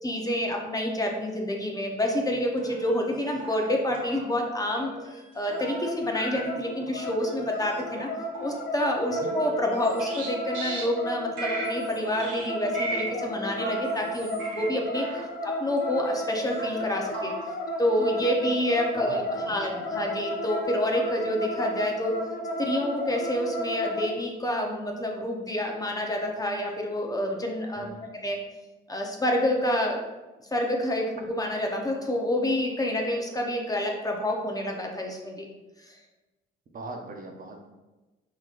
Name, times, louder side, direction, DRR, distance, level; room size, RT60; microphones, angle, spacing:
voice 1, 0.0-8.1 8.4-17.5 17.8-22.2 22.6-27.9 28.2-28.4 28.9-30.0 30.5-35.5 35.8-36.0, left 1 dB, 20° left, 1 dB, 0.7 m, -28 dB
sound 1, 2.6-3.1 3.4-3.7 3.9-4.2 4.8-5.3 5.6-5.9 6.1-6.4 7.0-7.3 7.8-8.1 8.3-8.6 9.2-10.3 10.5-10.8 11.4-11.9 12.2-12.5 12.7-13.0 13.6-14.7 14.9-15.2 15.8-16.3 16.6-16.9 17.1-17.4 18.0-18.1 18.8-19.1 19.3-19.6 20.2-20.6, right 3 dB, 75° right, 1.5 m, -38 dB
sound 2, 5.5-24.1, equal, 60° left, 0.8 m, -33 dB
voice 2, 18.9-19.8 27.7-28.1 36.7-37.7, right 2 dB, 45° right, 2 dB, 0.7 m, -40 dB
4.7 x 3.9 x 2.5 m, 1.1 s
cardioid pair, 90°, 20 cm